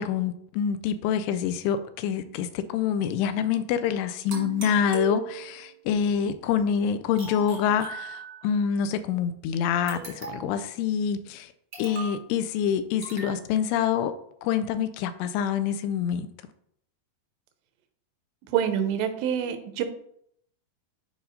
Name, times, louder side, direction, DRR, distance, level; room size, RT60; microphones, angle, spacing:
voice 1, 0.0-11.5 11.8-14.1 14.4-16.3, left 8 dB, 85° left, 2.6 m, -26 dB
sound 1, 4.3-5.7 7.2-8.6 9.9-10.6 11.7-12.2 13.0-13.4, right 6 dB, 50° right, 1.2 m, -38 dB
voice 2, 18.5-19.8, right 9 dB, 85° right, 2.9 m, -26 dB
10.0 x 4.9 x 2.7 m
omnidirectional pair, 4.8 m